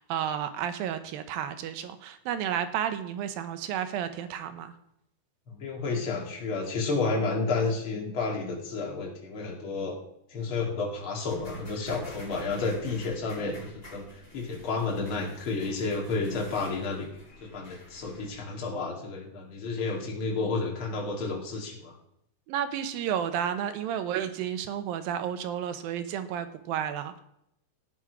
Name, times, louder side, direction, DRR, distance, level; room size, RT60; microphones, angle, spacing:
voice 1, 0.0-4.7 22.5-27.2, right 9 dB, 75° right, 10 dB, 2.6 m, -32 dB
voice 2, 5.5-10.0 10.3-14.0 14.3-17.1 17.4-21.9, left 3 dB, 35° left, -2 dB, 3.1 m, -31 dB
sound 1, 11.3-18.3, left 1 dB, 15° left, 5.4 m, -50 dB
17.5 x 7.3 x 4.9 m, 0.78 s
omnidirectional pair, 4.4 m